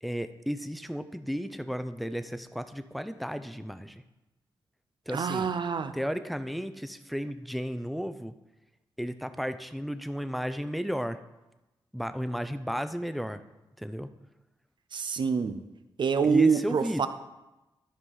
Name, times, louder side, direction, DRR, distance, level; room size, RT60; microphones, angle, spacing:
voice 1, 0.0-4.0 5.1-5.5 5.9-8.3 9.0-11.2 11.9-13.4 13.8-14.1 16.2-17.1, equal, ahead, 11 dB, 0.6 m, -33 dB
voice 2, 5.1-5.9 14.9-15.6 16.0-17.1, right 5 dB, 65° right, 10 dB, 0.7 m, -26 dB
12.5 x 5.0 x 5.5 m, 1.0 s
cardioid pair, 70°, 9 cm